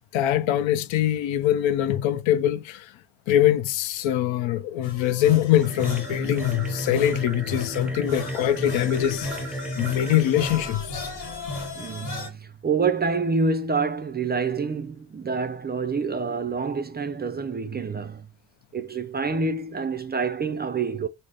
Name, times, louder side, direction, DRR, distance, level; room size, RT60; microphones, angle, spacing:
voice 1, 0.1-3.0 3.3-11.1, left 12 dB, 80° left, 0.5 m, -23 dB
sound 1, 4.8-12.3, left 2 dB, 55° left, 1.4 m, -36 dB
sound 2, 5.4-11.7, equal, ahead, 0.8 m, -34 dB
voice 2, 11.8-18.3 18.7-21.1, right 4 dB, 25° right, 0.3 m, -27 dB
3.3 x 2.1 x 3.8 m
supercardioid pair, 65°, 46 cm